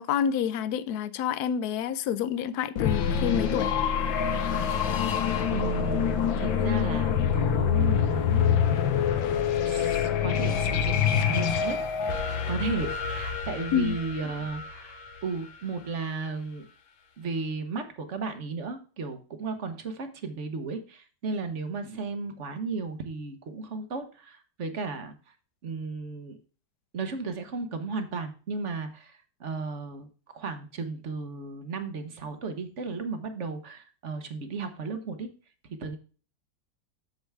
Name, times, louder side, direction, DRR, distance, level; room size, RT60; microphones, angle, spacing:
voice 1, 0.0-3.7 13.7-14.0, left 8 dB, 65° left, 1.0 m, -28 dB
sound 1, 2.8-15.5, left 8 dB, 85° left, 1.7 m, -26 dB
voice 2, 5.5-8.6 9.6-11.8 12.5-16.6 17.2-25.1 25.6-26.4 26.9-30.1 30.3-35.3 35.7-36.0, right 4 dB, 45° right, 1.2 m, -34 dB
8.0 x 7.0 x 3.4 m
omnidirectional pair, 2.0 m